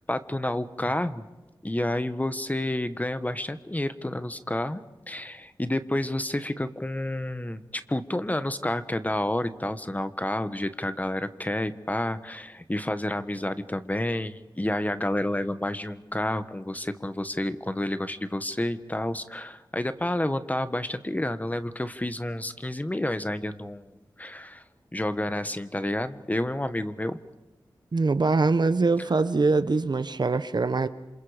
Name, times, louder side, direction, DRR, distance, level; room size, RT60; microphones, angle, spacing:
voice 1, 0.1-1.2 1.6-23.9 24.2-24.6 24.9-27.2, left 1 dB, 20° left, 11 dB, 1.4 m, -30 dB
voice 2, 27.9-30.9, right 3 dB, 55° right, 13 dB, 1.2 m, -23 dB
28.0 x 27.0 x 5.2 m, 1.1 s
wide cardioid pair, 60°, 9 cm